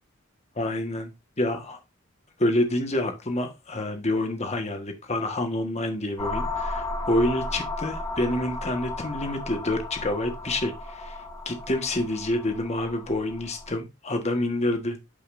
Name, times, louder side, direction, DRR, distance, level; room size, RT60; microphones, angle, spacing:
voice 1, 0.6-1.8 2.4-15.0, left 1 dB, 35° left, 1.4 m, -28 dB
sound 1, 6.2-13.8, left 2 dB, 15° left, 1.2 m, -34 dB
8.5 x 5.6 x 2.6 m
head